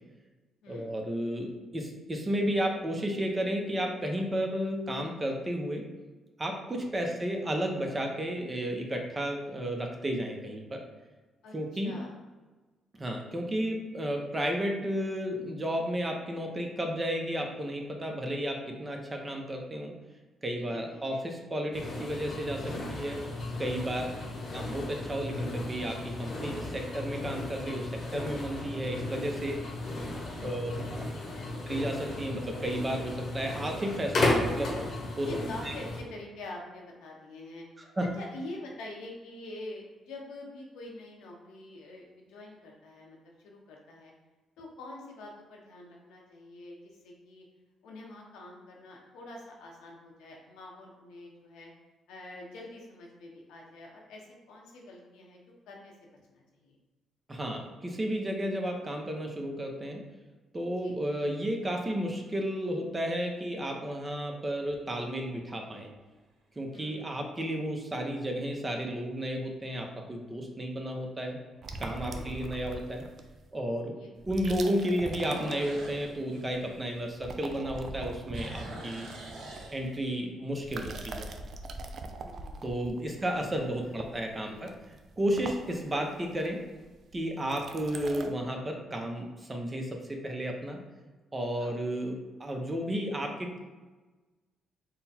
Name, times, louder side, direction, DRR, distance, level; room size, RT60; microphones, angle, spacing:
voice 1, 0.7-5.8 6.4-10.8 11.5-12.0 13.0-19.9 20.4-23.2 23.6-24.1 24.5-29.6 30.4-31.0 31.7-34.8 35.2-35.3 35.6-35.7 38.0-38.1 57.3-60.0 60.5-65.9 66.6-71.4 71.8-73.0 73.5-74.0 74.3-79.1 79.7-81.3 82.6-84.7 85.2-86.6 87.1-90.8 91.3-93.6, equal, 25° right, 2 dB, 0.7 m, -32 dB
voice 2, 11.4-12.1 20.6-21.2 24.0-24.6 30.4-31.5 35.3-44.1 44.6-47.4 47.8-51.7 52.1-55.9 56.3-56.8 60.8-61.0 66.7-67.0 72.1-72.6 73.9-74.3 82.1-83.2 83.6-84.1 84.5-84.7 85.6-86.5 91.6-91.9, left 2 dB, 90° left, -1 dB, 0.9 m, -46 dB
sound 1, 21.7-36.0, left 2 dB, 50° left, 1.0 m, -35 dB
sound 2, 61.4-62.1 62.8-62.9 68.1-68.5 69.0-69.1 69.7-69.8 70.0-70.1 71.6-71.7 75.1-77.6 77.9-80.3, right 1 dB, 75° right, 0.8 m, -45 dB
sound 3, 71.6-73.4 74.2-76.1 76.4-76.8 77.1-80.1 80.6-88.3, right 3 dB, 55° right, 0.4 m, -42 dB
3.8 x 2.2 x 4.2 m, 1.2 s
cardioid pair, 90°, 0 cm